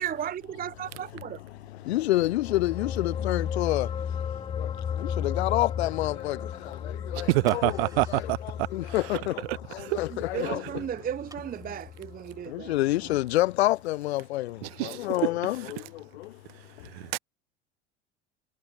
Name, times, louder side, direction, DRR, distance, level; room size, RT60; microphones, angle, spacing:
voice 1, 0.0-1.4 10.3-12.8, right 9 dB, 25° right, 0.7 m, -35 dB
voice 2, 1.9-3.9 5.0-6.4 7.1-8.2 8.7-9.4 9.9-10.6 12.5-14.6 14.8-15.8, left 17 dB, 80° left, 0.5 m, -27 dB
sound 1, 2.1-12.8 13.1-13.2, left 8 dB, 15° left, 0.4 m, -35 dB
voice 3, 7.1-9.2 9.5-10.0 10.4-10.6 14.6-15.1 16.9-17.2, right 22 dB, 65° right, 0.5 m, -28 dB
sound 2, 7.4-12.6, right 2 dB, 10° right, 2.7 m, -54 dB
hypercardioid pair, 70°, 32 cm